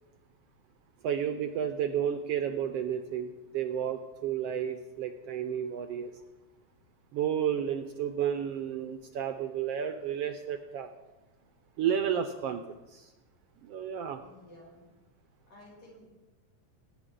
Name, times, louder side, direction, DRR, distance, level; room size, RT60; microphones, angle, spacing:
voice 1, 1.0-6.1 7.1-10.9 11.8-12.6 12.9-13.1 13.7-14.2, right 9 dB, 75° right, 7 dB, 1.4 m, -32 dB
voice 2, 14.1-14.9 15.5-16.1, left 1 dB, 90° left, -4 dB, 6.7 m, -53 dB
20.5 x 9.2 x 3.7 m, 1.1 s
omnidirectional pair, 3.3 m